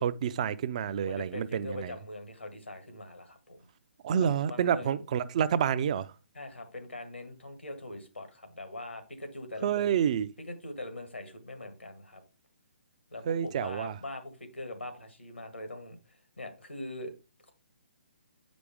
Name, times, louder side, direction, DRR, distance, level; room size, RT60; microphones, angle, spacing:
voice 1, 0.0-1.9 4.0-6.1 9.6-10.3 13.3-13.9, right 8 dB, 35° right, 0.4 m, -28 dB
voice 2, 1.0-3.6 4.1-4.9 6.3-10.0 10.4-12.2 13.1-17.1, left 2 dB, 80° left, 1.7 m, -42 dB
8.3 x 5.1 x 3.5 m
figure-of-eight pair, 135°, 6 cm